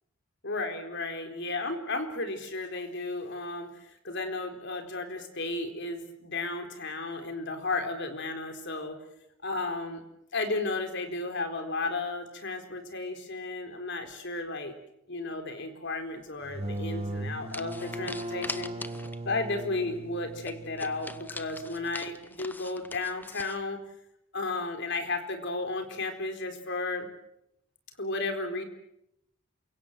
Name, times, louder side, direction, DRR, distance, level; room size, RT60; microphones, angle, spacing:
voice 1, 0.4-9.0 9.4-10.0 10.3-14.8 15.1-18.7 19.2-23.8 24.3-27.1 28.0-28.6, left 3 dB, 55° left, 6 dB, 4.2 m, -33 dB
sound 1, 16.4-21.9, right 1 dB, 30° right, 2.1 m, -38 dB
sound 2, 16.7-16.9 17.5-19.3 19.6-19.7 20.0-20.1 20.4-23.6, left 2 dB, 10° left, 0.9 m, -42 dB
28.5 x 25.0 x 7.7 m, 0.81 s
head